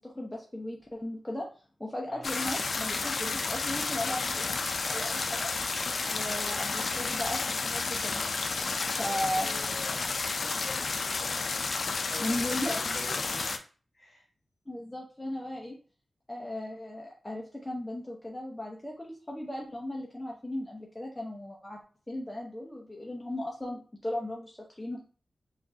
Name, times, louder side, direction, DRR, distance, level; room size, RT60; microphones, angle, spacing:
voice 1, 0.0-1.5 1.8-5.5 6.1-8.2 8.8-9.5 12.2-12.8 14.7-15.8 16.3-21.8 22.1-25.0, left 1 dB, 10° left, -2 dB, 0.7 m, -36 dB
sound 1, 2.2-13.6, left 4 dB, 65° left, 0.4 m, -31 dB
voice 2, 9.0-11.3 12.1-13.5 13.9-14.3, left 2 dB, 40° left, -1 dB, 1.5 m, -46 dB
5.1 x 2.5 x 2.7 m, 0.39 s
wide cardioid pair, 75°, 0 cm